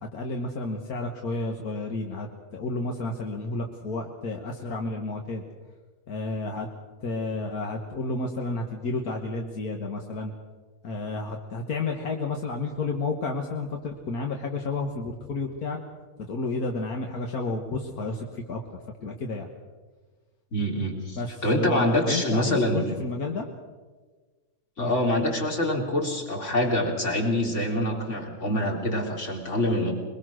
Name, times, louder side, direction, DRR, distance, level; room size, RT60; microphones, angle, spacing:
voice 1, 0.0-5.4 6.1-6.7 7.0-10.3 10.8-15.8 16.3-18.6 19.0-19.5 21.2-23.5 24.8-24.9, left 3 dB, 75° left, 2 dB, 1.9 m, -31 dB
voice 2, 20.5-23.0 24.8-29.9, left 1 dB, 50° left, 1 dB, 3.5 m, -25 dB
23.0 x 22.0 x 6.3 m, 1.4 s
omnidirectional pair, 1.6 m